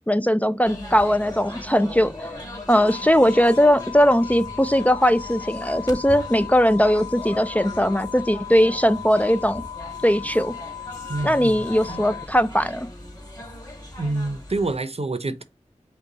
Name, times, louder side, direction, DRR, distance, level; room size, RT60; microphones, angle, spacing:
voice 1, 0.1-2.1 2.7-9.6 10.0-10.5 11.2-12.9, equal, 10° left, 0.4 m, -19 dB
sound 1, 0.6-14.8, left 1 dB, 30° left, 2.4 m, -39 dB
sound 2, 2.7-12.3, left 9 dB, 65° left, 1.2 m, -37 dB
voice 2, 11.1-11.6 11.9-12.0 14.0-15.4, right 2 dB, 55° right, 0.7 m, -27 dB
5.3 x 2.3 x 3.9 m
wide cardioid pair, 55°, 12 cm